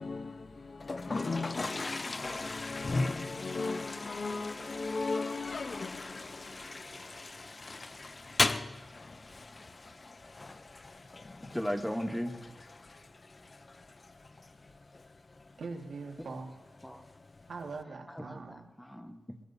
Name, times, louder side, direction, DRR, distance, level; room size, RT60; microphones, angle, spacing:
voice 1, 0.0-6.7, left 4 dB, 50° left, 0.9 m, -38 dB
Toilet flush, 0.8-17.8, left 3 dB, 35° left, 0.6 m, -39 dB
voice 2, 11.4-12.5 16.8-17.0 18.1-19.4, equal, 5° left, 1.2 m, -37 dB
voice 3, 15.6-16.5 17.5-18.7, right 4 dB, 80° right, 1.9 m, -42 dB
22.0 x 20.5 x 2.7 m
wide cardioid pair, 105°, 0 cm